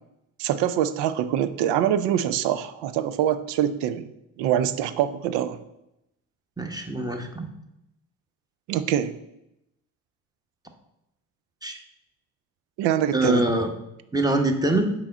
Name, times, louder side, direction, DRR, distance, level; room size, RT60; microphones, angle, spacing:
voice 1, 0.4-4.0 4.4-5.6 8.7-9.1 12.8-13.4, right 10 dB, 60° right, 12 dB, 0.6 m, -24 dB
voice 2, 6.6-7.5 11.6-11.8 13.1-13.7 14.1-14.9, right 2 dB, 10° right, 4 dB, 0.9 m, -23 dB
5.7 x 4.4 x 3.9 m, 0.86 s
figure-of-eight pair, 40°, 50 cm